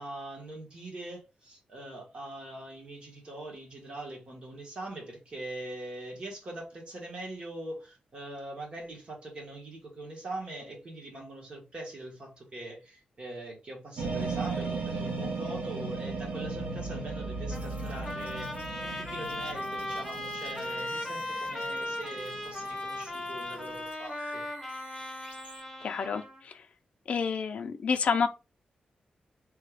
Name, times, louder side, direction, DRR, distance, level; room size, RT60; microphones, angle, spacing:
voice 1, 0.0-24.4, right 1 dB, 40° right, 1.3 m, -42 dB
sound 1, 14.0-23.6, right 3 dB, 85° right, 0.8 m, -37 dB
Trumpet, 17.5-26.4, left 1 dB, 10° left, 0.8 m, -37 dB
sound 2, 17.5-25.6, right 1 dB, 65° right, 1.8 m, -53 dB
voice 2, 25.8-26.6 27.1-28.3, left 6 dB, 55° left, 0.4 m, -29 dB
3.2 x 2.3 x 3.3 m
wide cardioid pair, 175°, 3 cm